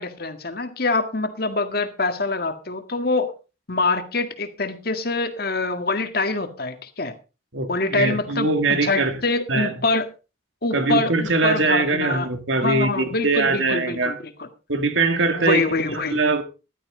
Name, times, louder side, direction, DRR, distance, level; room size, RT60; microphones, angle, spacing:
voice 1, 0.0-3.3 3.7-7.1 7.7-10.1 10.6-12.3 12.6-14.2 15.3-16.2, left 3 dB, 50° left, 1.8 m, -25 dB
voice 2, 7.5-9.2 9.5-9.7 10.7-14.2 14.7-15.6 15.9-16.4, right 3 dB, 80° right, 2.3 m, -22 dB
15.5 x 12.0 x 3.8 m
head